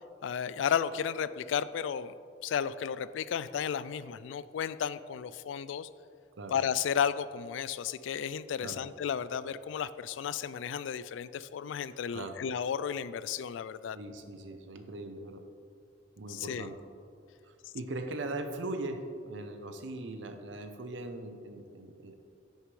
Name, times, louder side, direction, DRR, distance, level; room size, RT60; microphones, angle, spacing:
voice 1, 0.2-2.1 2.4-5.9 6.5-14.0 16.3-16.7, left 8 dB, 85° left, 15 dB, 0.3 m, -33 dB
voice 2, 13.9-15.4 16.2-16.8 17.4-22.2, right 2 dB, 85° right, 6 dB, 0.7 m, -40 dB
10.0 x 6.4 x 3.2 m, 2.4 s
head